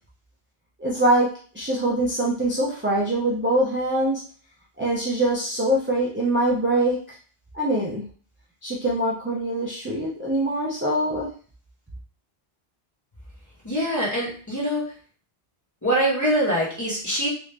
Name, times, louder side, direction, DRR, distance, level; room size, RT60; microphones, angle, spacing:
voice 1, 0.8-1.3 1.5-4.2 4.8-7.2 7.5-8.0 8.6-11.3, right 1 dB, 15° right, -6 dB, 0.5 m, -23 dB
voice 2, 13.6-14.9 15.8-17.3, right 1 dB, 20° left, -6 dB, 1.1 m, -24 dB
3.1 x 2.6 x 3.3 m, 0.42 s
omnidirectional pair, 1.0 m